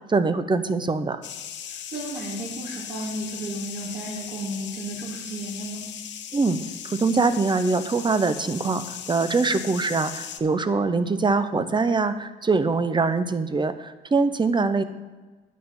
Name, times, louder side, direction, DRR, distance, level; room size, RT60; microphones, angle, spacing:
voice 1, 0.1-1.2 6.3-6.6 6.8-14.8, right 4 dB, 25° right, 12 dB, 0.7 m, -23 dB
sound 1, 1.2-10.4, left 9 dB, 65° left, 0.9 m, -38 dB
voice 2, 1.6-5.9, right 1 dB, 50° right, -5 dB, 2.6 m, -34 dB
9.5 x 5.8 x 7.1 m, 1.3 s
cardioid pair, 90°, 20 cm